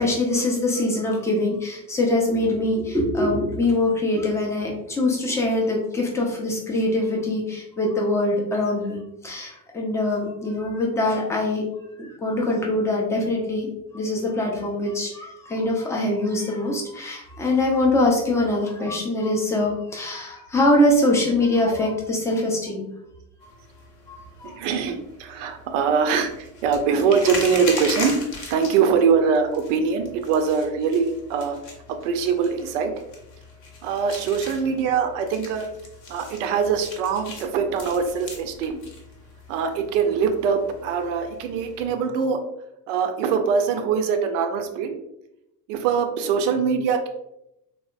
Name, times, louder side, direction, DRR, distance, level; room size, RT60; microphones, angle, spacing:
voice 1, 0.0-11.6 11.9-22.9 23.4-23.5 24.1-24.6, left 1 dB, 5° left, -2 dB, 0.4 m, -23 dB
sound 1, 23.4-41.9, left 3 dB, 35° left, 0.7 m, -39 dB
voice 2, 24.4-28.1 28.5-31.6 32.0-32.9 33.8-35.7 36.1-38.8 39.5-42.4 42.9-44.9 45.7-47.1, right 6 dB, 50° right, 6 dB, 0.5 m, -23 dB
3.4 x 2.1 x 2.4 m, 0.85 s
figure-of-eight pair, 65°, 50 cm